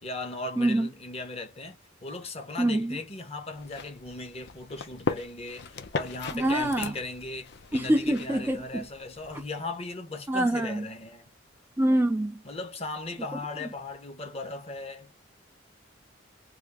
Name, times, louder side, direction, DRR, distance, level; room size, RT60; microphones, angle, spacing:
voice 1, 0.0-11.3 12.4-15.1, left 2 dB, 30° left, 0.9 m, -38 dB
voice 2, 0.6-0.9 2.6-3.0 6.3-6.9 7.7-8.9 9.3-9.4 10.3-10.9 11.8-12.4, right 1 dB, 10° right, 0.4 m, -25 dB
sound 1, 3.5-9.5, left 4 dB, 60° left, 0.6 m, -38 dB
3.3 x 2.4 x 3.4 m
head